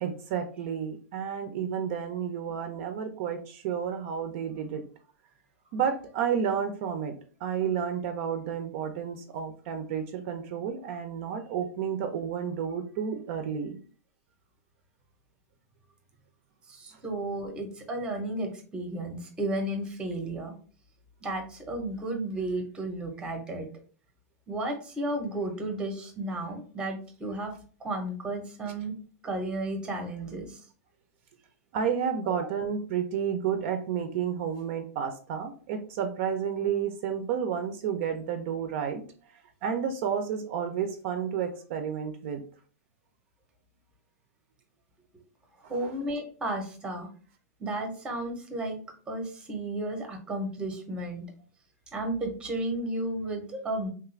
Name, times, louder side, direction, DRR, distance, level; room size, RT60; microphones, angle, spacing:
voice 1, 0.0-4.8 5.7-7.1 7.4-13.8 31.7-39.0 39.6-42.4 45.8-45.9, right 7 dB, 50° right, 7 dB, 0.4 m, -31 dB
voice 2, 16.7-20.5 21.2-23.7 24.5-27.5 27.8-28.9 29.2-30.6 45.7-47.1 47.6-48.8 49.1-51.2 51.9-53.9, right 1 dB, 10° right, 3 dB, 0.7 m, -33 dB
3.1 x 2.4 x 3.1 m, 0.41 s
supercardioid pair, 155°, 9 cm